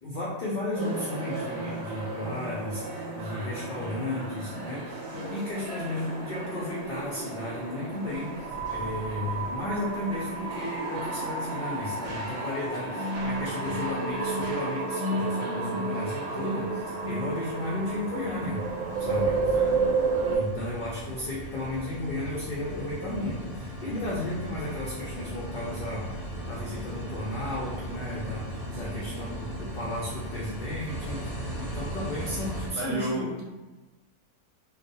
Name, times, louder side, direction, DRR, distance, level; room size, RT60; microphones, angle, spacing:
voice 1, 0.0-8.3 8.7-18.6 19.0-19.6 20.3-26.2 26.5-33.2, left 1 dB, 75° left, -6 dB, 0.4 m, -34 dB
sound 1, 0.8-20.4, right 3 dB, 85° right, 1.0 m, -32 dB
sound 2, 16.3-32.7, right 1 dB, ahead, 0.5 m, -38 dB
voice 2, 19.5-20.2 28.7-29.3 32.8-33.4, right 1 dB, 65° right, -4 dB, 0.8 m, -35 dB
2.3 x 2.0 x 2.6 m, 1.2 s
omnidirectional pair, 1.4 m